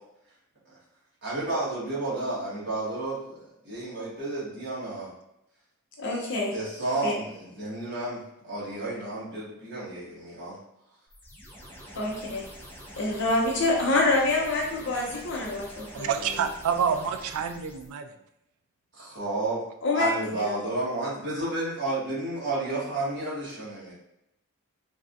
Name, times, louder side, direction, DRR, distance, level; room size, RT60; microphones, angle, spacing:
voice 1, 1.2-5.1 6.5-10.6 18.9-19.6 19.9-23.9, right 2 dB, 50° right, -8 dB, 1.4 m, -31 dB
voice 2, 6.0-6.5 7.0-7.1 11.9-12.4 13.0-16.3 19.8-20.6, left 2 dB, 55° left, -2 dB, 0.7 m, -26 dB
sound 1, 11.1-17.9, equal, 10° left, 0.5 m, -46 dB
voice 3, 15.9-18.1, right 7 dB, 80° right, 7 dB, 0.3 m, -28 dB
3.4 x 2.3 x 2.6 m, 0.84 s
head